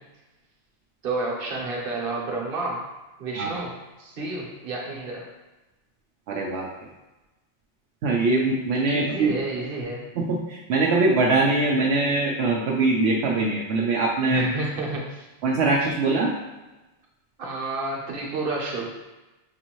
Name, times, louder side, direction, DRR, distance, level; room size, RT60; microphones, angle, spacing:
voice 1, 1.0-2.9 3.2-5.3 8.9-10.1 14.3-15.3 17.4-18.9, right 3 dB, 60° right, -2 dB, 1.1 m, -30 dB
voice 2, 6.3-6.7 8.0-9.3 10.2-14.4 15.4-16.3, right 3 dB, 80° right, -3 dB, 0.9 m, -22 dB
6.0 x 2.6 x 2.9 m, 1.1 s
omnidirectional pair, 1.1 m